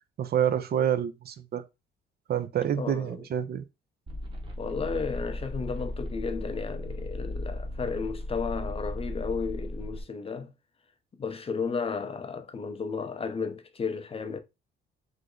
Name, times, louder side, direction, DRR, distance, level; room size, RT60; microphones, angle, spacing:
voice 1, 0.2-1.6 2.3-3.6, right 9 dB, 55° right, 0.5 m, -27 dB
voice 2, 2.8-3.2 4.6-10.5 11.1-14.4, left 5 dB, 30° left, 0.5 m, -33 dB
sound 1, 4.1-10.0, left 1 dB, 25° right, 0.9 m, -36 dB
3.2 x 2.0 x 3.7 m
cardioid pair, 90°, 20 cm